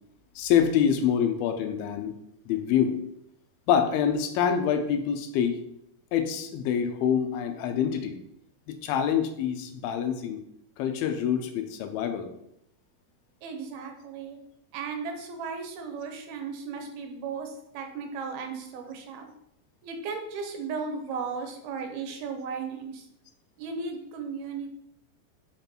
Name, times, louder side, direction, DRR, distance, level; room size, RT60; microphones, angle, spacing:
voice 1, 0.4-2.1 2.5-3.0 3.7-5.6 6.1-8.2 8.7-10.4 10.8-12.3, left 8 dB, 80° left, 7 dB, 2.6 m, -26 dB
voice 2, 13.4-14.4 14.7-19.3 19.8-23.0 23.6-24.7, right 5 dB, 80° right, 5 dB, 2.8 m, -35 dB
5.9 x 5.5 x 4.4 m, 0.78 s
omnidirectional pair, 4.4 m